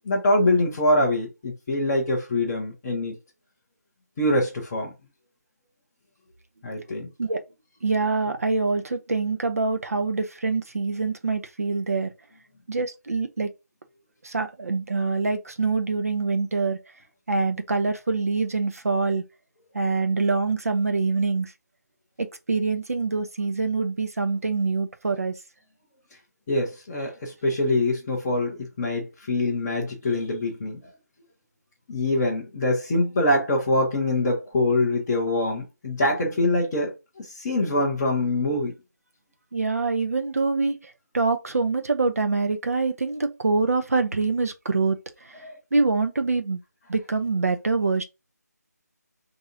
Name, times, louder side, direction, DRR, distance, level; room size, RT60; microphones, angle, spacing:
voice 1, 0.1-3.2 4.2-4.9 6.6-7.1 26.5-30.8 31.9-36.9 37.2-38.7 45.4-45.5, left 1 dB, 5° left, 0.3 m, -24 dB
voice 2, 7.8-12.1 12.7-13.5 14.2-16.8 17.3-19.2 19.7-21.5 22.2-25.4 39.5-40.8 41.1-45.4 45.7-46.6 46.9-48.0, right 3 dB, 55° right, 0.8 m, -25 dB
4.6 x 2.7 x 2.7 m
figure-of-eight pair, 165°, 9 cm